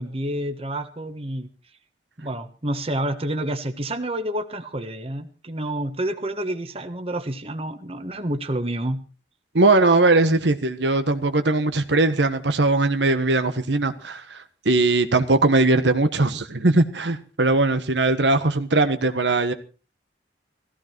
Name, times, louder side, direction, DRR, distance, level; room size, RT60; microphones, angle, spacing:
voice 1, 0.0-1.5 2.2-9.0 18.4-18.5, right 1 dB, 35° right, 1.4 m, -29 dB
voice 2, 9.5-19.5, right 2 dB, 85° right, 1.4 m, -20 dB
16.5 x 15.5 x 4.6 m
head